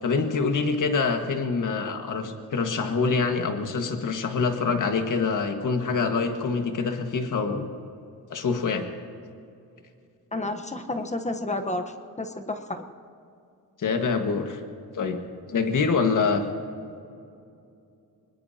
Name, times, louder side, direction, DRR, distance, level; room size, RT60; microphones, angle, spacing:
voice 1, 0.0-7.7 8.3-8.8 13.8-14.6 14.9-15.2 15.5-16.4, left 4 dB, 55° left, 5 dB, 1.7 m, -25 dB
voice 2, 10.3-12.9, left 2 dB, 20° left, 6 dB, 1.0 m, -31 dB
24.0 x 20.5 x 2.9 m, 2.6 s
cardioid pair, 95°, 36 cm